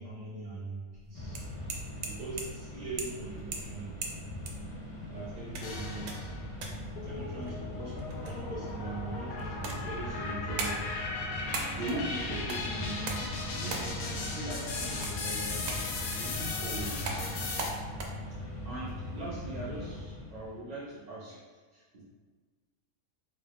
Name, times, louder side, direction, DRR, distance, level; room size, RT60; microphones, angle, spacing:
voice 1, 0.0-1.4 2.0-3.9 5.1-6.3 7.0-10.8 11.8-15.7 16.1-16.9 17.3-17.4 18.6-22.0, right 2 dB, 45° right, -9 dB, 0.5 m, -41 dB
Screwdriver Taps and Coin Jar Noises, 0.9-18.0, right 3 dB, 75° right, 1.0 m, -43 dB
Mechanisms, 1.1-20.6, left 1 dB, 60° left, 1.3 m, -40 dB
sound 1, 5.6-6.5 7.0-17.7, left 3 dB, 85° left, 1.1 m, -38 dB
3.6 x 2.3 x 3.4 m, 1.4 s
omnidirectional pair, 1.5 m